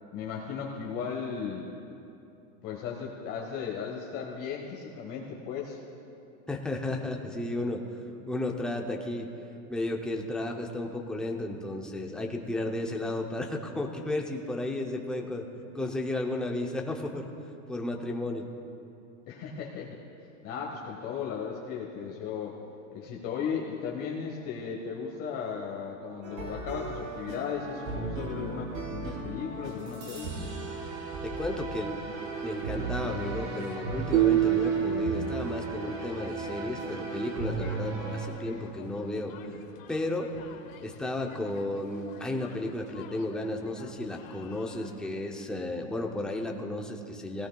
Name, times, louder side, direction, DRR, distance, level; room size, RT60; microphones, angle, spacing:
voice 1, 0.1-1.6 2.6-5.8 19.3-20.0 20.4-22.5 22.9-30.3, left 6 dB, 35° left, -1 dB, 1.3 m, -36 dB
voice 2, 6.5-7.8 8.3-9.3 9.7-15.5 15.7-17.3 17.7-18.5 31.2-32.0 32.4-39.4 39.9-40.3 40.8-47.5, left 2 dB, ahead, 1 dB, 0.5 m, -33 dB
sound 1, 26.2-38.3, right 3 dB, 70° right, 3.1 m, -36 dB
sound 2, 32.1-45.1, left 8 dB, 70° left, 1.2 m, -51 dB
sound 3, 34.1-36.3, right 11 dB, 50° right, 0.5 m, -26 dB
17.0 x 16.5 x 2.3 m, 2.7 s
supercardioid pair, 150°, 41 cm